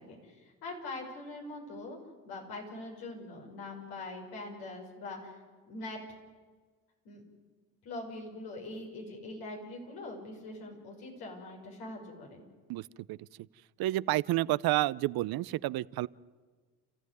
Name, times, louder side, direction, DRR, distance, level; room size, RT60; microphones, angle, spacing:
voice 1, 0.0-2.0 2.2-6.0 7.0-7.2 7.8-12.4, left 2 dB, 85° left, 1 dB, 6.1 m, -43 dB
voice 2, 12.7-13.2 13.8-16.1, right 17 dB, 70° right, 20 dB, 0.7 m, -30 dB
29.5 x 14.5 x 9.5 m, 1.4 s
supercardioid pair, 60°, 38 cm